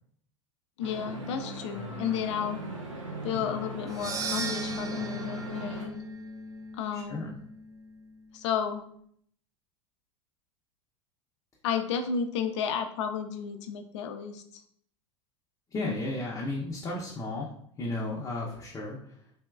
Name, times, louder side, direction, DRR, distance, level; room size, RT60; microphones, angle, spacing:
voice 1, 0.8-2.6 3.2-6.0 6.7-7.3 8.3-8.8 11.6-14.6, left 7 dB, 65° left, 7 dB, 0.5 m, -32 dB
sound 1, 0.8-5.9, right 1 dB, 90° right, 0.7 m, -39 dB
sound 2, 3.9-8.2, right 1 dB, 20° right, 0.5 m, -37 dB
voice 2, 6.9-7.3 15.7-19.0, left 2 dB, 20° left, -4 dB, 0.7 m, -34 dB
3.3 x 2.9 x 2.3 m, 0.65 s
hypercardioid pair, 85°, 16 cm